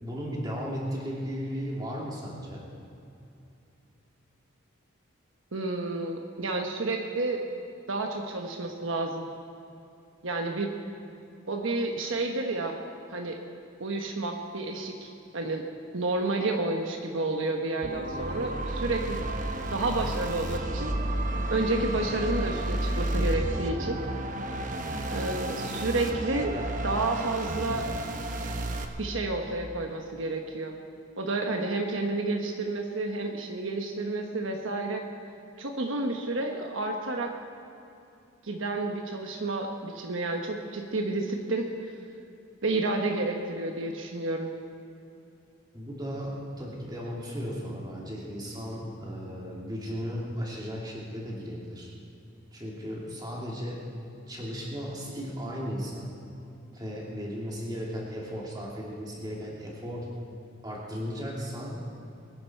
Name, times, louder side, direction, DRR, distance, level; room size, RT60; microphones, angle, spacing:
voice 1, 0.0-2.7 45.7-51.9 52.5-53.8 54.3-56.1 56.7-60.1 60.6-61.8, equal, 20° right, -4 dB, 2.8 m, -35 dB
voice 2, 5.5-7.4 7.9-9.3 10.2-10.7 11.5-12.7 13.1-13.4 13.8-15.6 15.9-19.2 19.7-20.9 21.5-24.0 25.1-26.5 26.8-27.9 29.0-30.7 31.2-35.0 35.6-37.3 38.4-41.7 42.6-44.5, right 2 dB, 70° right, 2 dB, 1.1 m, -30 dB
sound 1, 17.8-28.9, right 1 dB, 40° right, 0.9 m, -31 dB
22.5 x 10.5 x 4.5 m, 2.7 s
head